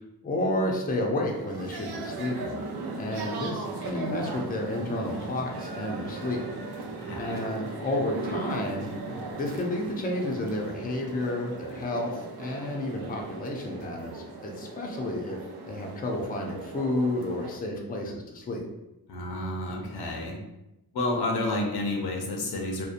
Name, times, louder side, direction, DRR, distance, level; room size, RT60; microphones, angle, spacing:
voice 1, 0.2-2.6 3.0-6.4 7.2-8.9 9.4-15.4 15.7-18.6, left 1 dB, 25° left, 0 dB, 0.4 m, -31 dB
sound 1, 1.1-17.6, right 3 dB, 85° right, 0.5 m, -38 dB
voice 2, 6.9-7.4 19.1-20.4 20.9-22.9, left 2 dB, 85° left, 0 dB, 0.6 m, -30 dB
2.7 x 2.1 x 2.4 m, 0.96 s
wide cardioid pair, 105°, 37 cm